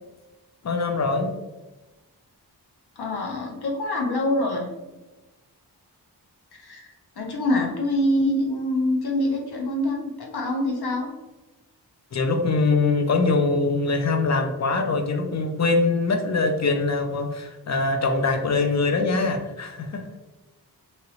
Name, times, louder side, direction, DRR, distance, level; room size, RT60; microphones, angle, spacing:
voice 1, 0.6-1.3 12.1-20.0, left 3 dB, 45° left, 5 dB, 0.4 m, -23 dB
voice 2, 3.0-4.7 6.6-6.9 7.2-11.1, left 1 dB, 70° left, 0 dB, 0.7 m, -25 dB
2.9 x 2.9 x 2.7 m, 1.1 s
wide cardioid pair, 120°, 39 cm